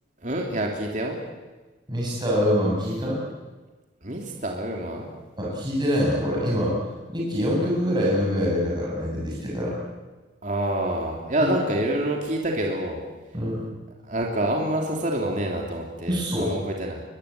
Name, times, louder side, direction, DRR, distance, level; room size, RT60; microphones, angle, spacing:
voice 1, 0.2-1.2 4.0-5.1 10.4-13.0 14.1-17.0, right 1 dB, 40° right, 0 dB, 3.3 m, -27 dB
voice 2, 1.9-3.2 5.4-6.8 7.1-9.8 11.4-11.5 13.3-13.6 16.1-16.5, equal, 20° right, -4 dB, 7.3 m, -24 dB
23.5 x 22.0 x 8.6 m, 1.2 s
head